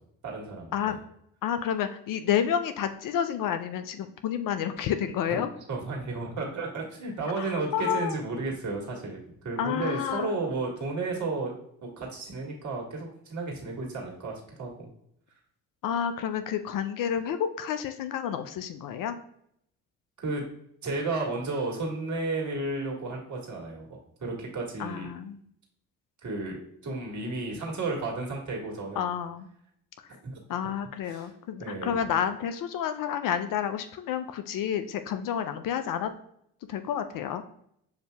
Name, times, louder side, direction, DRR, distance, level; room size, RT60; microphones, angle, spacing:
voice 1, 0.2-0.7 5.3-5.4 5.7-11.5 11.8-14.9 20.2-20.5 20.8-25.1 26.2-26.6 26.8-29.1 30.1-30.4 31.0-31.3 31.6-32.1, right 3 dB, 45° right, -2 dB, 1.6 m, -33 dB
voice 2, 1.4-5.5 7.4-8.2 9.6-10.3 15.8-19.2 24.8-25.4 29.0-29.5 30.5-36.1 36.7-37.4, left 9 dB, 55° left, 9 dB, 0.4 m, -30 dB
6.8 x 2.7 x 2.2 m, 0.72 s
hypercardioid pair, 50°, 40 cm